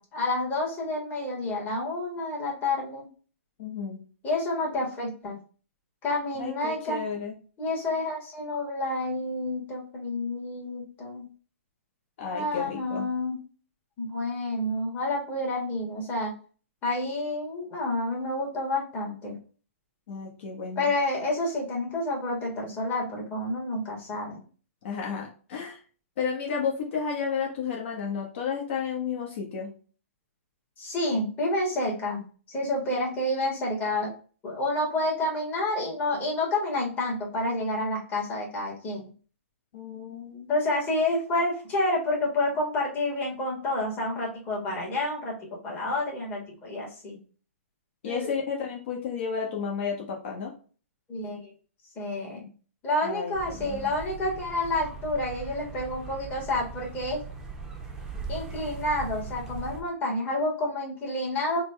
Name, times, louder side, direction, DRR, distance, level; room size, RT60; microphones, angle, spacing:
voice 1, 0.0-3.1 4.2-5.4 6.0-7.0 7.6-11.3 12.3-13.4 14.0-16.3 16.8-19.4 20.8-24.4 30.8-32.2 32.5-34.1 34.4-39.1 40.5-45.4 45.6-47.2 48.0-48.3 51.1-51.5 51.9-52.5 52.8-57.2 58.3-61.6, left 2 dB, 25° left, -2 dB, 1.4 m, -29 dB
voice 2, 3.6-4.0 6.4-7.3 12.2-13.1 20.1-20.9 24.8-25.8 26.2-29.7 39.7-40.5 48.0-50.5 53.0-53.9, left 6 dB, 55° left, -1 dB, 1.0 m, -32 dB
sound 1, 53.3-59.8, right 4 dB, 5° right, 0.6 m, -40 dB
3.9 x 2.2 x 3.2 m, 0.38 s
hypercardioid pair, 140°, 8 cm